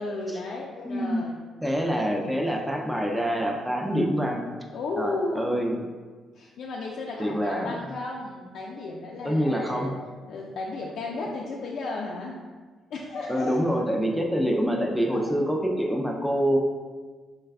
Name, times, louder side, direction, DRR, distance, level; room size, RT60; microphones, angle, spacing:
voice 1, 0.0-1.4 4.7-5.7 6.3-10.0 10.3-12.4 12.9-13.8 15.1-15.3, left 3 dB, 65° left, -3 dB, 0.3 m, -34 dB
voice 2, 0.8-1.2 1.6-4.5 5.0-5.8 7.2-7.8 9.2-9.9 13.3-16.6, equal, ahead, 0 dB, 0.4 m, -26 dB
3.2 x 2.2 x 3.4 m, 1.4 s
cardioid pair, 90°, 0 cm